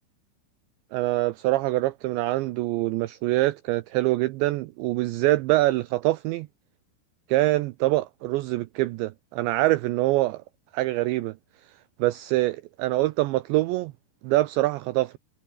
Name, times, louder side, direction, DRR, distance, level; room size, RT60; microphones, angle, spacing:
voice 1, 0.9-6.5 7.3-10.4 10.7-11.4 12.0-13.9 14.2-15.2, right 18 dB, 85° right, 2.5 m, -24 dB
omnidirectional pair, 6.0 m